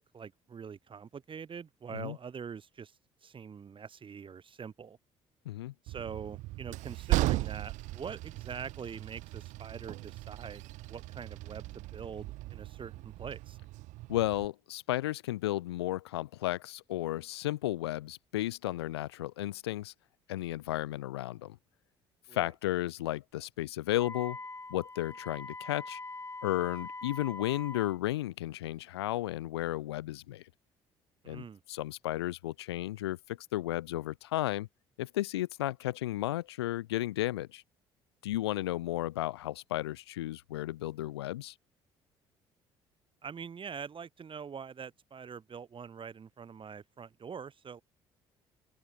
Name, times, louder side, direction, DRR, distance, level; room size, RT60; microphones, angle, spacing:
voice 1, 0.0-2.9 3.2-5.0 5.8-13.6 22.3-22.5 31.2-31.6 43.2-47.8, right 6 dB, 40° right, 6.4 m, -44 dB
Train, 5.9-14.5, right 19 dB, 65° right, 6.6 m, -37 dB
voice 2, 14.1-19.9 20.3-21.6 22.3-24.4 24.7-26.0 26.4-30.4 31.3-34.7 35.0-37.6 38.2-41.5, left 15 dB, 80° left, 1.2 m, -33 dB
Wind instrument woodwind instrument, 23.9-28.0, left 3 dB, 20° left, 3.5 m, -43 dB
open air
hypercardioid pair, 55°, 13 cm